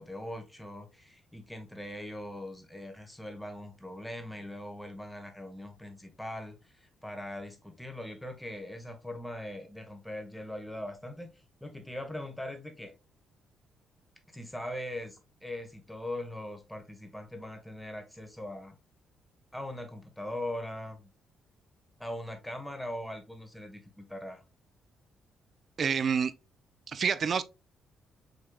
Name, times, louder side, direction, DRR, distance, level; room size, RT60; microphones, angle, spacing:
voice 1, 0.0-12.9 14.3-18.7 19.5-21.1 22.0-24.4, left 1 dB, 5° left, 1.3 m, -41 dB
voice 2, 25.8-26.3 26.9-27.4, right 6 dB, 50° right, 0.5 m, -27 dB
6.3 x 3.3 x 2.3 m
cardioid pair, 90°, 0 cm